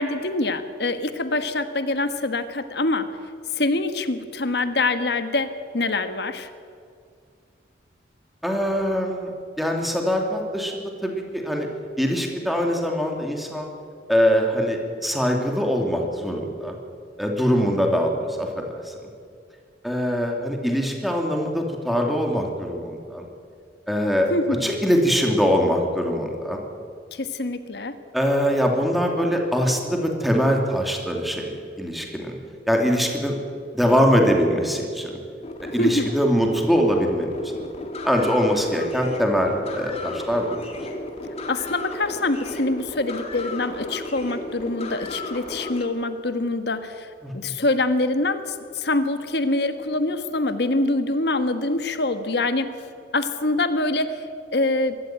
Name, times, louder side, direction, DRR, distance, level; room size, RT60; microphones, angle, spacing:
voice 1, 0.0-3.1 3.5-6.5 24.3-24.7 27.1-28.0 35.8-36.1 41.5-52.7 53.1-54.2 54.5-55.0, left 2 dB, 65° left, 10 dB, 1.3 m, -25 dB
voice 2, 8.4-9.3 9.6-11.7 12.0-13.7 14.1-16.8 17.2-18.9 19.8-23.2 23.9-24.3 24.6-26.6 28.1-32.4 32.7-33.4 33.7-35.2 35.7-37.6 38.0-40.7 47.2-47.5, equal, ahead, 1 dB, 2.7 m, -23 dB
sound 1, 35.4-45.9, left 2 dB, 35° left, 2.4 m, -34 dB
24.0 x 13.5 x 9.0 m, 2.3 s
head